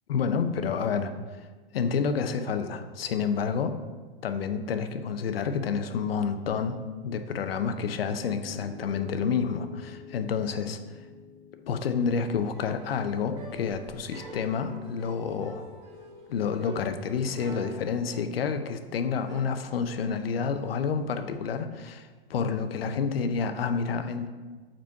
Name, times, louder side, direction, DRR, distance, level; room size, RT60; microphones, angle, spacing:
voice 1, 0.1-1.1 1.7-3.8 4.2-6.8 7.0-10.8 11.7-15.6 16.3-24.3, left 6 dB, 75° left, 9 dB, 0.6 m, -29 dB
Piano, 7.4-15.5, left 7 dB, 10° left, 0.5 m, -48 dB
sound 1, 12.5-19.5, right 1 dB, 55° right, 1.9 m, -47 dB
5.1 x 4.3 x 4.6 m, 1.4 s
hypercardioid pair, 110°, 30 cm